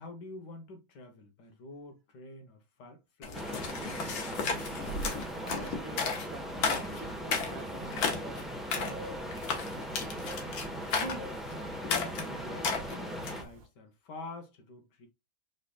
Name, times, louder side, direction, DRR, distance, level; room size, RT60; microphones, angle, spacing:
voice 1, 0.0-3.5 10.9-11.3 11.8-15.1, left 2 dB, 65° left, 1.5 m, -46 dB
sound 1, 3.2-13.4, left 5 dB, 85° left, 2.0 m, -34 dB
sound 2, 3.3-13.4, right 1 dB, ahead, 0.3 m, -39 dB
voice 2, 5.4-8.2 8.7-9.1, right 6 dB, 75° right, 1.6 m, -47 dB
sound 3, 6.2-13.7, right 1 dB, 50° right, 1.3 m, -50 dB
5.3 x 4.1 x 2.2 m
omnidirectional pair, 2.1 m